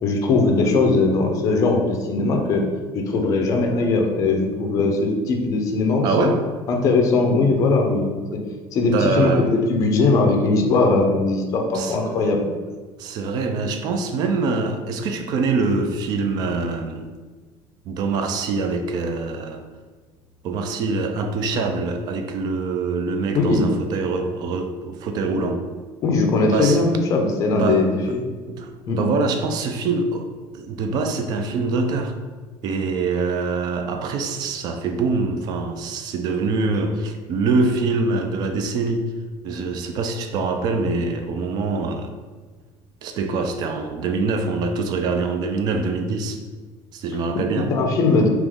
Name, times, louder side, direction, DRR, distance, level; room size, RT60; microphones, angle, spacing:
voice 1, 0.0-2.6 2.9-6.3 6.7-8.4 8.7-12.4 23.3-23.7 25.3-25.5 26.0-28.3 28.9-29.1 47.5-48.3, left 3 dB, 30° left, 2 dB, 0.5 m, -20 dB
voice 2, 6.0-6.5 8.9-9.5 11.7-12.3 13.0-17.1 17.9-19.6 20.4-25.7 26.4-26.8 27.5-28.1 28.5-30.3 30.5-32.1 32.6-39.1 39.4-42.1 43.0-46.4 46.9-47.7, right 3 dB, 40° right, 6 dB, 0.4 m, -24 dB
3.5 x 3.0 x 3.5 m, 1.4 s
cardioid pair, 180°, 11 cm